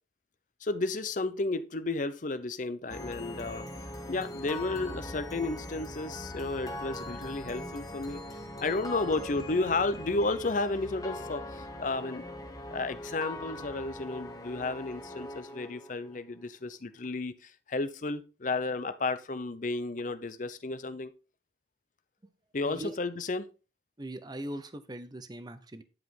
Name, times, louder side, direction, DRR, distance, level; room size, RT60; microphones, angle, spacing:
voice 1, 0.6-3.7 4.1-8.2 8.6-12.2 12.7-21.1 22.5-23.5, left 3 dB, 45° left, 13 dB, 0.7 m, -32 dB
sound 1, 2.9-16.2, left 1 dB, 20° left, 1.2 m, -41 dB
voice 2, 22.6-23.0 24.0-25.8, right 1 dB, 25° right, 11 dB, 0.7 m, -40 dB
11.0 x 4.9 x 3.8 m, 0.33 s
head